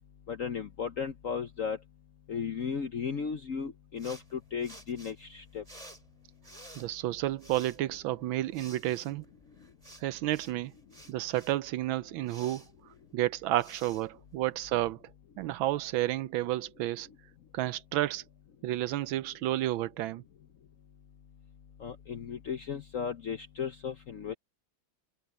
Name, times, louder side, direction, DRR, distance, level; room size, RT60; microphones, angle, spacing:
voice 1, 0.3-1.8 2.3-5.6 21.8-24.3, left 6 dB, 60° left, 0.8 m, -35 dB
sound 1, 4.0-14.9, right 1 dB, 15° right, 4.5 m, -54 dB
voice 2, 6.8-9.2 10.0-10.7 11.1-12.6 13.1-15.0 15.4-17.1 17.5-18.2 18.6-20.2, right 15 dB, 75° right, 1.3 m, -31 dB
omnidirectional pair, 2.4 m